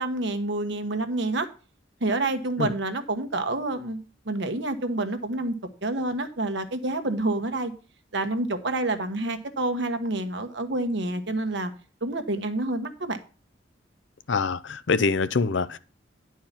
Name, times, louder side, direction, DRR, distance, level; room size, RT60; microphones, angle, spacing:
voice 1, 0.0-1.5 2.0-4.0 4.3-5.5 5.8-7.7 8.1-11.7 12.0-13.2, right 2 dB, 65° right, 1.1 m, -28 dB
voice 2, 14.3-15.8, left 4 dB, 75° left, 0.6 m, -24 dB
10.5 x 4.7 x 5.7 m
head